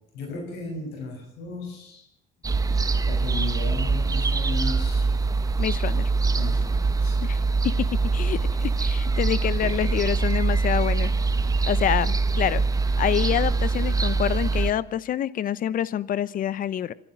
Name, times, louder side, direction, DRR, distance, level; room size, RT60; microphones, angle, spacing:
voice 1, 0.1-2.1 3.1-5.1 6.3-7.3, left 3 dB, 85° left, 0 dB, 6.7 m, -35 dB
sound 1, 2.4-14.7, right 4 dB, 20° right, 1.2 m, -23 dB
voice 2, 5.6-6.0 7.2-7.4 7.6-11.1 11.7-12.6 13.0-16.9, left 10 dB, 55° left, 18 dB, 0.9 m, -27 dB
25.0 x 11.5 x 9.0 m, 0.78 s
cardioid pair, 110°, 17 cm